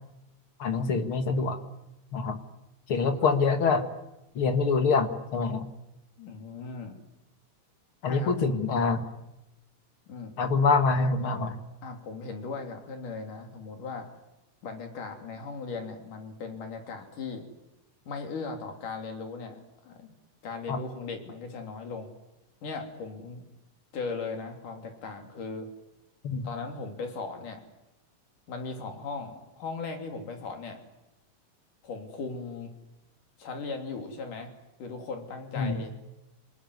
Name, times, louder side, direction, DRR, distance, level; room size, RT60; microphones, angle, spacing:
voice 1, 0.6-1.6 2.1-2.4 2.9-3.9 4.4-5.7 8.0-9.0 10.4-11.6 20.7-20.8 26.2-26.5 35.6-35.8, left 4 dB, 45° left, 8 dB, 2.4 m, -25 dB
voice 2, 6.2-7.0 8.1-8.6 10.1-10.4 11.8-14.1 14.6-17.5 18.1-20.1 20.4-22.1 22.6-23.4 23.9-25.7 26.4-27.6 28.5-30.8 31.8-32.7 33.4-34.5 34.8-35.9, left 4 dB, 80° left, 4 dB, 4.9 m, -38 dB
27.5 x 20.0 x 9.6 m, 0.95 s
omnidirectional pair, 3.6 m